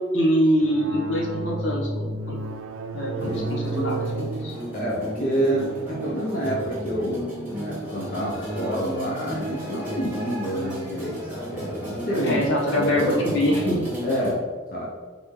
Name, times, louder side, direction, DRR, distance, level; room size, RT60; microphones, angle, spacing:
voice 1, 0.1-2.4 2.9-4.5 12.2-13.9, equal, 65° left, -2 dB, 1.0 m, -24 dB
sound 1, 0.6-8.7, right 3 dB, 85° right, 0.4 m, -34 dB
sound 2, 3.2-14.3, equal, 10° right, 1.2 m, -33 dB
voice 2, 4.7-12.4 12.8-13.2 14.0-14.4 14.7-14.9, right 1 dB, 45° left, -5 dB, 0.7 m, -28 dB
4.0 x 3.2 x 3.7 m, 1.5 s
head